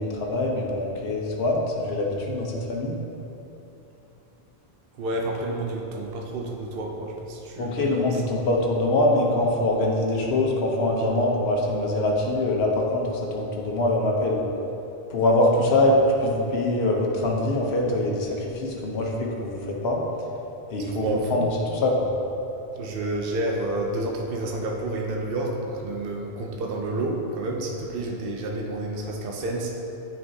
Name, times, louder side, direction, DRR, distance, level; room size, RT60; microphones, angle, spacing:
voice 1, 0.0-3.0 7.6-14.4 15.1-20.0 20.7-22.1, left 1 dB, 75° left, -1 dB, 1.1 m, -24 dB
voice 2, 5.0-8.4 20.8-21.5 22.8-29.7, right 2 dB, 65° right, 0 dB, 0.8 m, -30 dB
9.3 x 4.4 x 2.8 m, 2.9 s
omnidirectional pair, 1.1 m